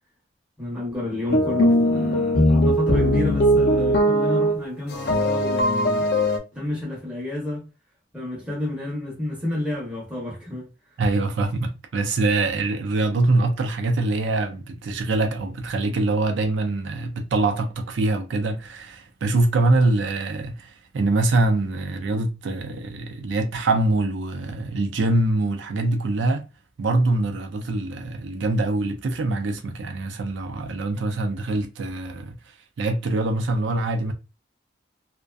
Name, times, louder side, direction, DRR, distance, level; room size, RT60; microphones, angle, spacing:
voice 1, 0.6-6.0 6.5-7.7 8.1-10.7, left 1 dB, 5° right, 0.8 m, -30 dB
sound 1, 1.3-4.6 4.9-6.4, equal, 55° left, 0.6 m, -20 dB
voice 2, 11.0-26.5 26.8-32.4 32.8-34.1, right 2 dB, 85° right, 0.4 m, -24 dB
2.5 x 2.1 x 2.3 m
head